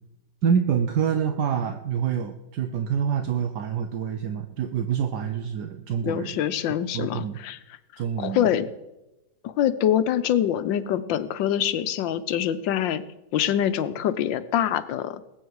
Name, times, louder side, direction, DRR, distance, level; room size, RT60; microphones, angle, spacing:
voice 1, 0.4-6.4 6.9-7.4 8.0-8.6, right 7 dB, 70° right, 8 dB, 1.3 m, -26 dB
voice 2, 6.0-7.6 8.2-8.6 9.4-13.0 13.3-15.2, left 10 dB, 85° left, 13 dB, 1.5 m, -25 dB
20.0 x 8.9 x 4.7 m, 0.97 s
omnidirectional pair, 2.0 m